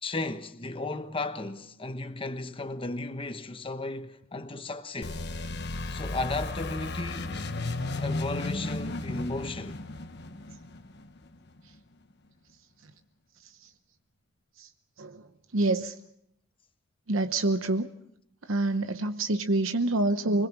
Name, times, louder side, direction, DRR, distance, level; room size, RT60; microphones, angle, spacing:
voice 1, 0.0-5.2 5.9-7.5 8.0-9.8, left 2 dB, 25° left, 1.1 m, -35 dB
sound 1, 5.0-11.6, left 2 dB, 55° left, 1.2 m, -34 dB
voice 2, 15.5-15.9 17.1-17.9 18.5-20.5, right 2 dB, 85° right, 0.9 m, -26 dB
25.5 x 21.0 x 5.9 m
head